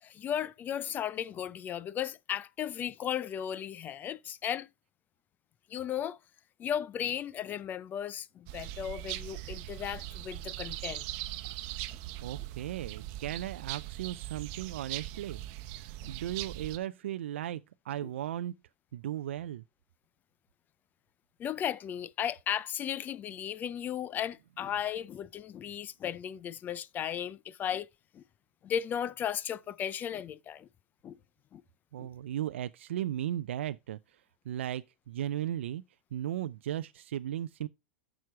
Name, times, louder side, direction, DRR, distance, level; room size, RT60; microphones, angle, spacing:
voice 1, 0.0-4.7 5.7-6.2 6.6-11.0 12.4-12.5 16.0-16.1 18.0-18.1 21.4-27.9 28.1-28.2 28.6-30.7 31.0-31.2 31.5-31.6 32.0-32.1, left 9 dB, 30° left, 0.5 m, -35 dB
sound 1, 8.5-16.8, right 16 dB, 55° right, 0.9 m, -40 dB
voice 2, 12.2-15.4 16.1-17.6 17.9-18.5 18.9-19.6 31.9-34.0 34.5-35.8 36.1-37.7, right 12 dB, 80° right, 0.4 m, -36 dB
9.6 x 6.3 x 4.5 m
hypercardioid pair, 120°, 6 cm